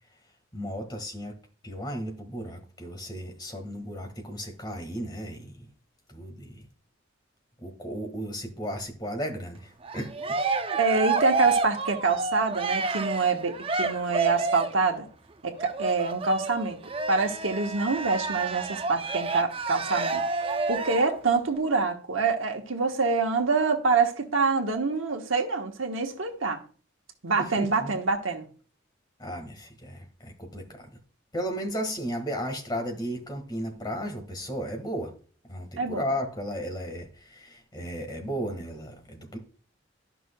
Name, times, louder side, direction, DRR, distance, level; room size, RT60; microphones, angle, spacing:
voice 1, 0.5-1.3 1.6-5.7 6.1-6.7 7.6-10.3 27.4-28.0 29.2-31.0 31.3-35.1 35.4-39.4, equal, 20° left, 1.6 m, -35 dB
Cheering, 9.8-14.8 15.6-21.2, right 4 dB, 30° right, 0.5 m, -30 dB
voice 2, 10.8-15.1 15.4-16.8 17.1-20.2 20.7-26.6 27.2-28.4 35.8-36.0, right 4 dB, 85° right, 1.2 m, -26 dB
12.0 x 6.0 x 2.2 m
head